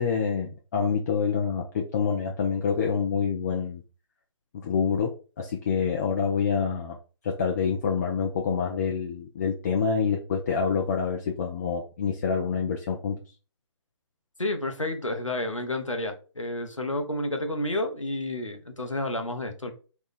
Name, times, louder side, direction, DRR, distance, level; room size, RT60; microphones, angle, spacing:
voice 1, 0.0-3.8 4.6-7.0 7.2-13.2, left 6 dB, 30° left, 0 dB, 0.5 m, -27 dB
voice 2, 14.4-19.7, left 1 dB, 90° left, 5 dB, 0.9 m, -30 dB
4.1 x 2.3 x 4.1 m, 0.36 s
figure-of-eight pair, 140°, 16 cm